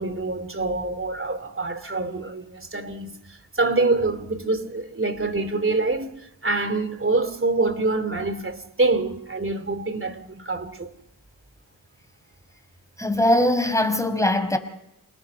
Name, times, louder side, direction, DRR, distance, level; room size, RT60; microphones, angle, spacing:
voice 1, 0.0-10.9, right 3 dB, 30° right, 3.1 m, -26 dB
voice 2, 13.0-14.6, left 1 dB, 10° left, 5.2 m, -21 dB
28.5 x 20.5 x 5.8 m
supercardioid pair, 45°, 40 cm